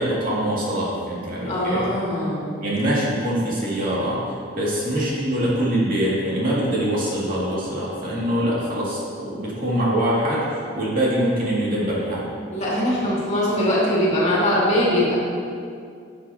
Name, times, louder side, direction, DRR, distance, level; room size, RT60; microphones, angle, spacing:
voice 1, 0.0-1.9 2.6-10.5 10.7-12.3, right 1 dB, 45° right, -6 dB, 2.2 m, -23 dB
voice 2, 1.5-2.5 12.5-15.2, left 1 dB, 35° left, -7 dB, 2.4 m, -21 dB
13.0 x 7.9 x 2.8 m, 2.3 s
head